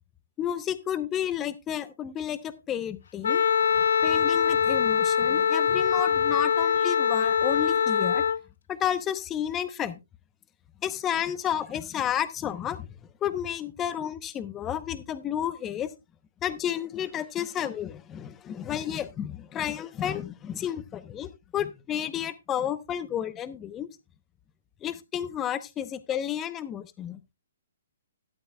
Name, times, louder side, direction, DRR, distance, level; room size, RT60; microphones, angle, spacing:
voice 1, 0.4-3.4 4.0-8.2 8.7-10.0 10.8-12.9 13.2-15.9 16.4-23.9 24.8-27.2, left 10 dB, 15° left, 14 dB, 0.8 m, -31 dB
Wind instrument woodwind instrument, 3.2-8.4, left 7 dB, 70° left, 0.5 m, -23 dB
12.5 x 11.5 x 2.2 m, 0.24 s
hypercardioid pair, 160°, 0 cm